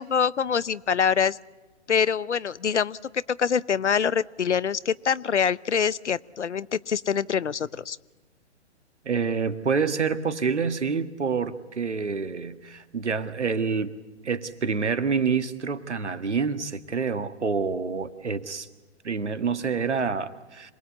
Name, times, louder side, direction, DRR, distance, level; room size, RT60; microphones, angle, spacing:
voice 1, 0.0-1.4 1.9-3.0 3.3-8.0, left 7 dB, 75° left, 20 dB, 0.8 m, -25 dB
voice 2, 9.1-13.9 14.2-18.7 19.0-20.7, right 5 dB, 75° right, 11 dB, 1.7 m, -27 dB
26.5 x 20.0 x 8.4 m, 1.2 s
figure-of-eight pair, 125°, 35 cm